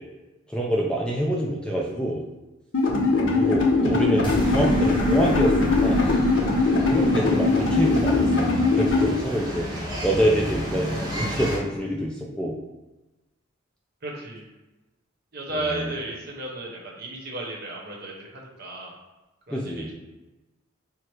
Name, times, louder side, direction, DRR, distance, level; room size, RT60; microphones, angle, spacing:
voice 1, 0.5-2.2 3.4-6.0 6.4-8.5 8.8-12.6 15.5-15.9 19.5-19.9, right 1 dB, 5° left, -2 dB, 0.3 m, -26 dB
sound 1, 2.7-9.1, left 3 dB, 65° left, 0.7 m, -21 dB
sound 2, 4.2-8.5, equal, 25° left, 0.9 m, -32 dB
sound 3, 5.7-11.6, equal, 20° right, 0.8 m, -32 dB
voice 2, 14.0-14.4 15.3-18.9 19.5-19.9, right 2 dB, 50° right, -2 dB, 0.9 m, -34 dB
4.5 x 2.0 x 4.6 m, 1.1 s
head